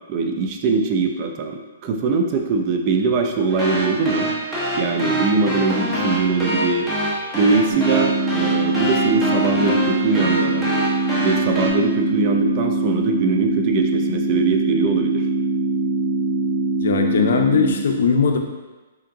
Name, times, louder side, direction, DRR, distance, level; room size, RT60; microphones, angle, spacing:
voice 1, 0.1-4.3 4.7-6.9 7.3-10.7 11.2-15.3, right 4 dB, 35° right, 4 dB, 0.4 m, -21 dB
sound 1, 3.5-11.7, equal, ahead, 0.8 m, -25 dB
sound 2, 7.7-17.7, right 3 dB, 65° right, 1.3 m, -22 dB
voice 2, 16.8-18.4, left 6 dB, 65° left, 4 dB, 0.5 m, -19 dB
3.7 x 3.5 x 2.7 m, 1.2 s
hypercardioid pair, 150°, 0 cm